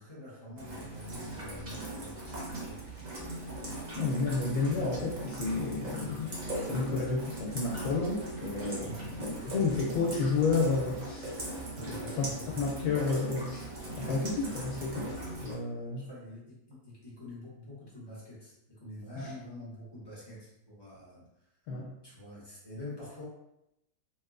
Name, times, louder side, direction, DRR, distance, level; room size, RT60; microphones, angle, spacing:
voice 1, 0.0-2.8 3.6-4.0 8.8-9.5 11.7-12.6 14.0-14.2 14.9-15.1 16.0-21.3 22.0-23.2, left 1 dB, 20° left, -7 dB, 0.9 m, -47 dB
Rain, 0.6-15.5, right 1 dB, 40° right, 0.6 m, -39 dB
voice 2, 3.9-11.3 12.2-12.3 12.6-13.7 14.0-16.1 19.2-19.3 21.7-21.9, left 4 dB, 90° left, -1 dB, 1.1 m, -31 dB
3.2 x 2.9 x 2.4 m, 0.83 s
omnidirectional pair, 1.6 m